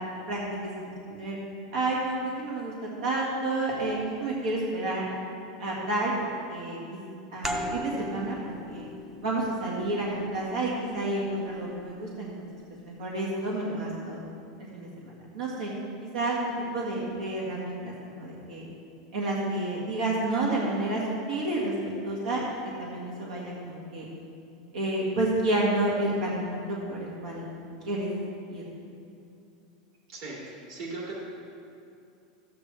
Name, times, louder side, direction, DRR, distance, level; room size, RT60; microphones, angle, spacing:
voice 1, 0.7-1.4 1.7-5.1 5.6-7.0 7.3-8.9 9.2-12.5 12.8-14.2 14.6-15.7 16.0-18.7 19.1-21.0 21.3-21.7 22.0-22.4 22.8-24.1 24.7-27.5 27.8-28.1 28.5-28.6, right 2 dB, 85° right, -4 dB, 1.8 m, -30 dB
sound 1, 7.4-12.7, equal, 10° right, 0.5 m, -39 dB
voice 2, 30.1-31.2, right 2 dB, 50° right, -4 dB, 2.7 m, -38 dB
13.5 x 8.6 x 3.4 m, 2.6 s
supercardioid pair, 170°, 4 cm